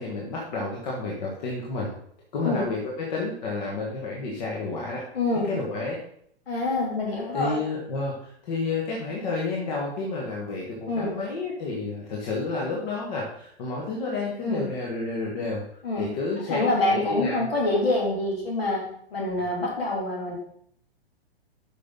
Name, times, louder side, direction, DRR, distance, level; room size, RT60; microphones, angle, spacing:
voice 1, 0.0-1.9 2.3-5.0 5.4-6.0 7.3-17.5, left 3 dB, 45° left, -3 dB, 1.7 m, -30 dB
voice 2, 5.1-5.5 6.5-7.5 10.9-11.1 14.4-14.7 15.8-16.1 16.5-18.8 19.1-20.4, left 2 dB, 65° left, -2 dB, 3.1 m, -26 dB
8.3 x 5.8 x 3.9 m, 0.66 s
figure-of-eight pair, 115°, 32 cm